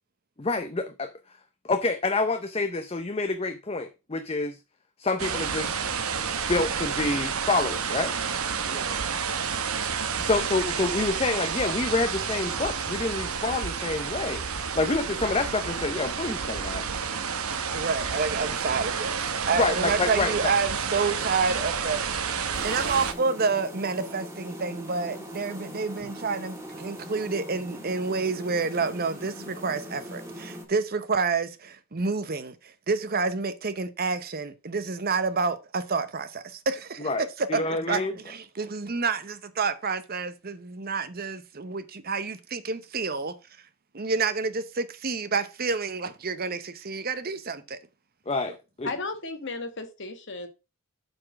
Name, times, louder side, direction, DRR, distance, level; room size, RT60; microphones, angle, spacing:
voice 1, 0.4-1.1 1.6-4.6 5.0-5.7 6.5-8.1 10.2-16.9 19.6-20.3 37.0-38.1 48.3-48.9, left 3 dB, 25° left, 0.6 m, -27 dB
sound 1, 5.2-23.1, right 6 dB, 75° right, 1.0 m, -30 dB
voice 2, 8.7-9.0 17.7-22.4 22.6-37.1 37.4-37.6 37.9-43.3 43.9-47.8, right 4 dB, 40° right, 0.8 m, -29 dB
sound 2, 22.5-30.7, equal, 10° right, 1.7 m, -41 dB
voice 3, 48.8-50.5, left 3 dB, 55° left, 1.5 m, -34 dB
7.8 x 4.4 x 5.8 m
head